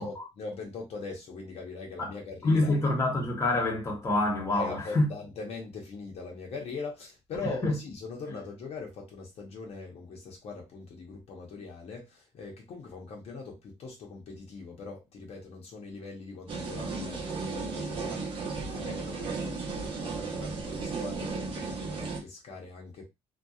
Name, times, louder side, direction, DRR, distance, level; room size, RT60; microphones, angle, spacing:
voice 1, 0.0-2.8 4.5-23.1, left 4 dB, 60° left, 0.8 m, -41 dB
voice 2, 2.4-5.1 7.6-7.7, left 2 dB, 25° left, 1.0 m, -26 dB
sound 1, 16.5-22.2, right 4 dB, 45° right, 0.8 m, -35 dB
2.7 x 2.2 x 2.3 m
cardioid pair, 130°, 12 cm